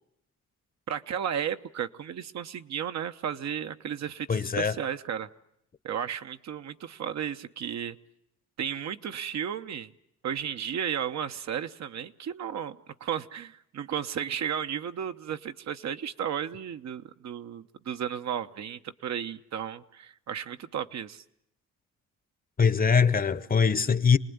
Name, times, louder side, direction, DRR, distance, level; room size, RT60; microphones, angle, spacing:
voice 1, 0.9-5.3 5.8-8.0 8.6-9.9 10.2-21.2, right 8 dB, 65° right, 1.1 m, -34 dB
voice 2, 4.3-4.8 22.6-24.2, left 6 dB, 30° left, 0.9 m, -22 dB
27.5 x 19.5 x 9.5 m
cardioid pair, 90°, 30 cm